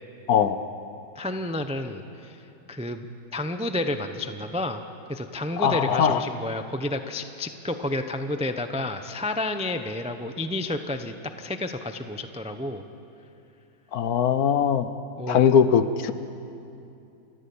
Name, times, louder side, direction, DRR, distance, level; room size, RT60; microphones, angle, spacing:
voice 1, 0.3-0.6 5.6-6.2 13.9-14.9 15.3-16.1, left 7 dB, 65° left, 11 dB, 1.2 m, -20 dB
voice 2, 1.1-3.1 3.3-4.8 5.1-12.8 15.2-15.6, left 1 dB, 10° right, 7 dB, 0.4 m, -30 dB
29.5 x 14.0 x 8.6 m, 2.7 s
omnidirectional pair, 1.8 m